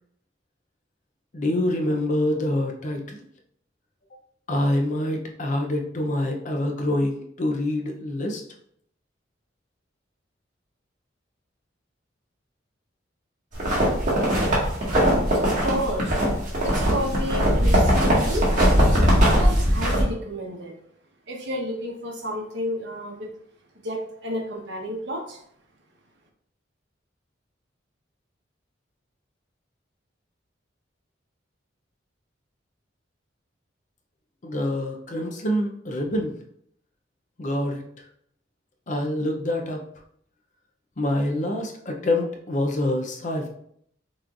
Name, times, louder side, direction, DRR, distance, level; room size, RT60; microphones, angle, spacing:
voice 1, 1.3-3.2 4.5-8.4 34.4-36.4 37.4-37.8 38.9-39.8 41.0-43.5, left 1 dB, 40° left, 2 dB, 0.6 m, -26 dB
sound 1, 13.6-20.0, equal, 45° right, 1.7 m, -20 dB
voice 2, 15.4-16.2 16.6-18.5 19.4-20.8 21.3-23.3 23.8-25.4, equal, 65° right, 1 dB, 1.0 m, -31 dB
5.9 x 3.1 x 2.5 m, 0.68 s
head